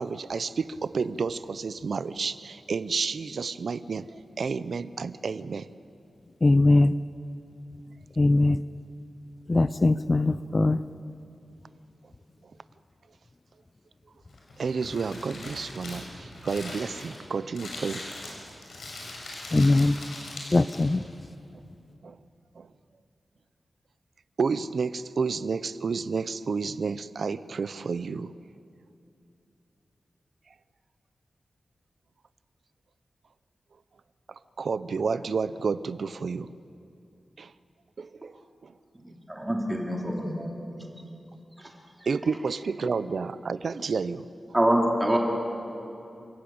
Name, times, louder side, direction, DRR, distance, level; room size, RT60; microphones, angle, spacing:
voice 1, 0.0-5.7 14.6-18.0 22.0-22.2 22.6-22.7 24.4-28.3 34.6-36.5 37.4-37.5 38.0-38.3 38.6-38.7 42.1-44.3, right 5 dB, 65° right, 15 dB, 0.6 m, -30 dB
voice 2, 6.4-7.0 8.2-8.6 9.5-10.8 19.5-20.0 20.5-21.1, left 2 dB, 25° left, 14 dB, 0.4 m, -21 dB
Crumpling crinkling, 14.3-21.0, left 2 dB, 85° left, 6.6 m, -41 dB
voice 3, 39.3-40.5 42.8-42.9 44.5-45.2, right 1 dB, 10° right, -1 dB, 2.9 m, -25 dB
28.5 x 15.5 x 8.7 m, 2.7 s
wide cardioid pair, 145°, 0 cm